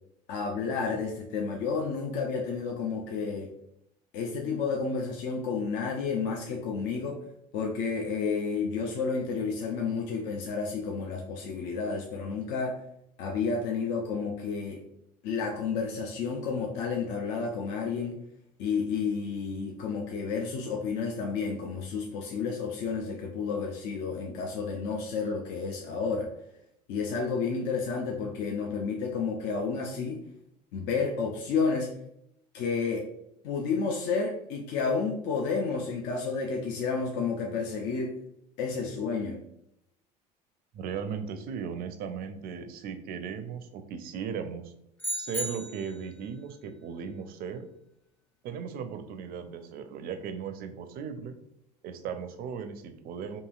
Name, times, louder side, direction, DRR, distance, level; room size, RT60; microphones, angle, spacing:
voice 1, 0.3-3.5 4.1-7.2 7.5-12.8 13.2-14.8 15.2-18.2 18.6-26.3 26.9-30.2 30.7-31.9 32.5-33.1 33.4-38.1 38.6-39.4, left 5 dB, 55° left, 1 dB, 0.5 m, -31 dB
voice 2, 40.7-44.7 45.1-47.7 48.4-51.4 51.8-53.4, right 7 dB, 45° right, 9 dB, 0.4 m, -37 dB
sound 1, 45.0-46.1, right 1 dB, 10° left, 0.5 m, -34 dB
2.9 x 2.6 x 2.3 m, 0.79 s
hypercardioid pair, 70°, 21 cm